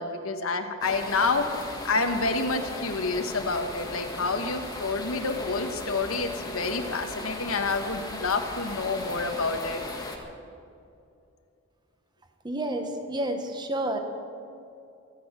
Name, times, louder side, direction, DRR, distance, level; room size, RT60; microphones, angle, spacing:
voice 1, 0.0-9.8, left 3 dB, 80° left, 6 dB, 1.3 m, -28 dB
sound 1, 0.8-10.2, left 2 dB, 20° left, 1.5 m, -38 dB
voice 2, 12.4-14.0, right 1 dB, 20° right, 5 dB, 1.2 m, -30 dB
24.0 x 8.6 x 6.3 m, 2.6 s
head